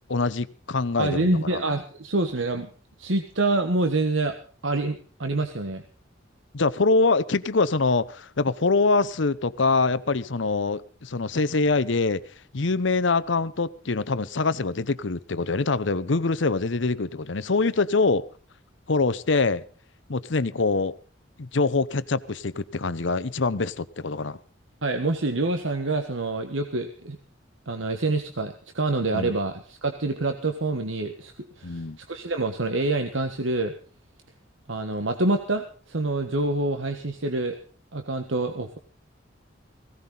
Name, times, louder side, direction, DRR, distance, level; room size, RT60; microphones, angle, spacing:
voice 1, 0.1-1.6 6.5-12.2 12.5-18.3 18.9-19.6 20.1-20.9 21.4-24.4 29.1-29.3 31.6-32.0, left 3 dB, 65° left, 0.8 m, -24 dB
voice 2, 1.0-2.7 3.0-4.3 4.6-5.8 24.8-27.2 27.7-33.7 34.7-37.6 37.9-38.8, right 2 dB, 75° right, 1.4 m, -26 dB
17.5 x 17.0 x 3.9 m
head